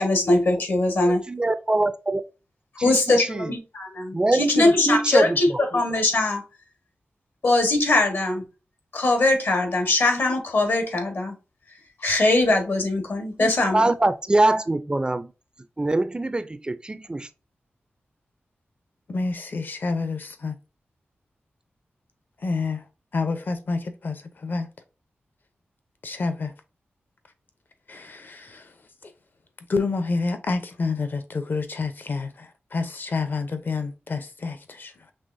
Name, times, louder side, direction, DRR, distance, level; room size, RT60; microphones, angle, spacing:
voice 1, 0.0-1.2 2.8-6.4 7.4-8.4 8.9-11.3 12.0-14.0, left 2 dB, 70° left, 1.3 m, -21 dB
voice 2, 1.3-2.2 2.8-3.4 4.1-5.4 13.4-15.3 15.8-17.3, right 2 dB, 20° right, 0.3 m, -23 dB
voice 3, 19.1-20.6 22.4-22.8 23.1-24.7 26.0-26.5 27.9-28.7 29.0-29.1 29.7-35.1, left 4 dB, 55° left, 0.7 m, -28 dB
5.4 x 3.2 x 2.6 m
wide cardioid pair, 100°, 4 cm